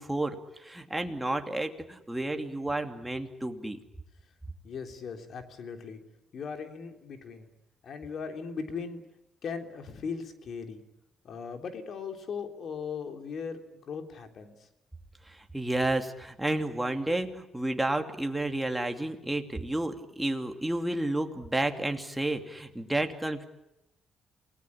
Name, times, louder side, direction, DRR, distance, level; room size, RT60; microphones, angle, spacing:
voice 1, 0.0-3.8 15.3-23.4, right 1 dB, 5° right, 4 dB, 2.7 m, -31 dB
voice 2, 4.6-6.0 6.3-7.5 7.8-9.0 9.4-10.8 11.2-14.7, left 5 dB, 60° left, 5 dB, 3.5 m, -38 dB
28.5 x 19.0 x 10.0 m, 0.92 s
cardioid pair, 90°, 0 cm